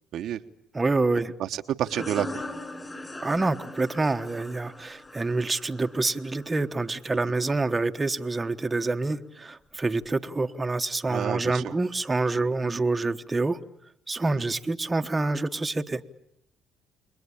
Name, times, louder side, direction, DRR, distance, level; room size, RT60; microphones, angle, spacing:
voice 1, 0.7-1.3 3.1-13.6 14.1-16.0, right 3 dB, 20° right, 6 dB, 1.3 m, -27 dB
voice 2, 1.4-2.4 11.1-11.7, right 10 dB, 70° right, 7 dB, 1.1 m, -29 dB
sound 1, 1.8-7.2, left 2 dB, 20° left, 6.2 m, -40 dB
29.0 x 22.0 x 8.6 m, 0.77 s
supercardioid pair, 75°, 0 cm